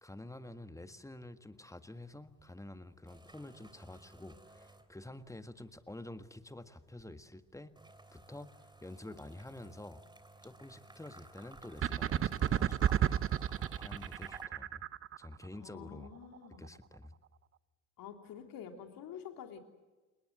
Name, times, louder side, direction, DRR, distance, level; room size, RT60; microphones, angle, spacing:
voice 1, 0.0-7.7 8.1-10.0 10.4-12.8 13.5-14.8 15.2-16.1 16.6-17.1, left 1 dB, 5° left, 11 dB, 1.7 m, -49 dB
sound 1, 2.0-2.4 2.7-5.4 5.7-14.5, right 2 dB, 10° right, 3.3 m, -56 dB
sound 2, 11.8-15.3, right 10 dB, 30° right, 0.7 m, -31 dB
voice 2, 15.6-16.6 18.0-19.6, left 8 dB, 55° left, 6 dB, 3.2 m, -48 dB
29.0 x 19.5 x 7.7 m, 1.2 s
figure-of-eight pair, 50°, 42 cm